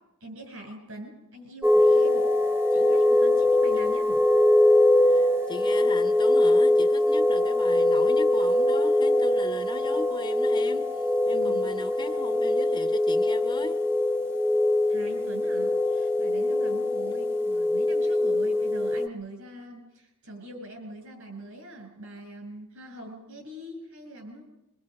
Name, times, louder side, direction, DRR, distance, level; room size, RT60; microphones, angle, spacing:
voice 1, 0.2-2.2 2.7-4.2 11.3-11.7 14.9-24.4, right 1 dB, 70° right, 7.4 m, -43 dB
sound 1, 1.6-19.1, left 1 dB, 10° right, 0.9 m, -22 dB
voice 2, 5.0-13.9, left 2 dB, 20° left, 0.8 m, -38 dB
24.5 x 24.5 x 5.3 m
head